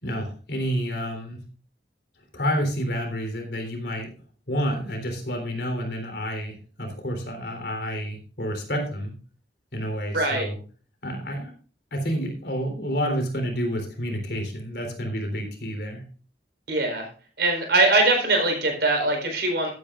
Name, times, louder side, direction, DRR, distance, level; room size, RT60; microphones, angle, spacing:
voice 1, 0.0-1.4 2.3-4.1 4.5-9.1 9.7-10.6 11.0-11.5 11.9-16.0, equal, 65° left, 3 dB, 3.6 m, -29 dB
voice 2, 10.1-10.5 16.7-17.1 17.4-19.7, right 2 dB, 65° right, 3 dB, 4.4 m, -22 dB
15.5 x 9.4 x 2.5 m, 0.39 s
head